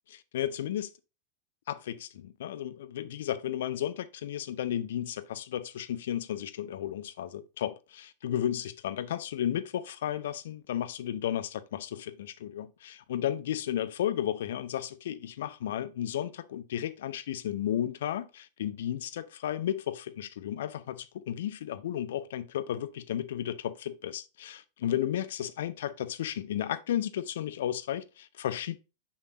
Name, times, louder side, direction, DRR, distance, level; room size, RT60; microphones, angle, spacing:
voice 1, 0.1-0.9 1.7-28.8, left 11 dB, 60° left, 0.6 m, -33 dB
6.3 x 5.8 x 2.7 m
figure-of-eight pair, 90°, 0 cm